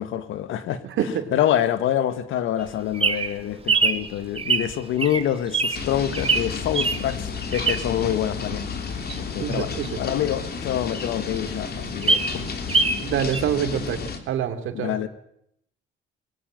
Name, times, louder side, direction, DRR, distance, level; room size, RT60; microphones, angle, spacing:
voice 1, 0.0-0.8 1.3-8.6 9.1-9.7 10.0-12.5 14.7-15.1, left 11 dB, 85° left, 12 dB, 1.7 m, -26 dB
voice 2, 0.8-1.3 9.4-10.0 13.0-15.0, right 8 dB, 80° right, 7 dB, 2.8 m, -26 dB
Bird vocalization bird call bird song, 2.6-8.1 8.5-10.7 11.1-11.2 11.4-11.5 11.8-13.1 13.3-13.4, right 4 dB, 30° right, 2.1 m, -24 dB
sound 1, 5.7-14.2, left 5 dB, 50° left, 3.2 m, -32 dB
21.0 x 17.5 x 9.0 m, 0.73 s
cardioid pair, 90°, 20 cm